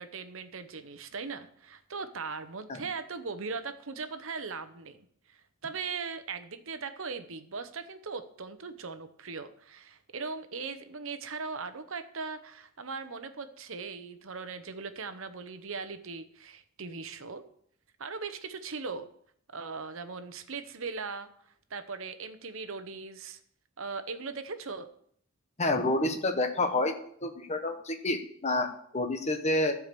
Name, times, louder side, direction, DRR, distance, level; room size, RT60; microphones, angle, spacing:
voice 1, 0.0-17.4 18.0-19.1 19.5-21.3 21.7-23.4 23.8-24.9, right 4 dB, 60° right, 10 dB, 0.9 m, -39 dB
voice 2, 25.6-26.9 27.2-29.8, left 2 dB, 30° left, 6 dB, 1.1 m, -29 dB
12.5 x 4.8 x 6.8 m, 0.65 s
head